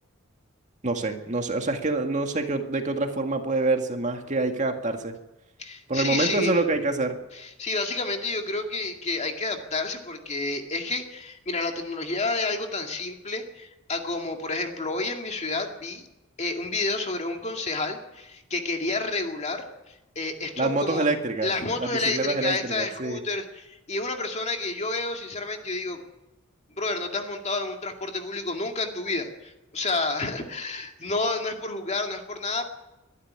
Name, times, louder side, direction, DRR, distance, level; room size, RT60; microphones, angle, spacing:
voice 1, 0.8-5.2 5.9-7.2 20.6-21.5 21.8-23.2, right 2 dB, 35° right, 4 dB, 2.0 m, -26 dB
voice 2, 5.6-6.5 7.3-16.1 16.4-21.1 21.4-26.0 26.8-32.7, left 3 dB, 35° left, 4 dB, 2.3 m, -30 dB
23.0 x 12.5 x 9.7 m, 0.98 s
head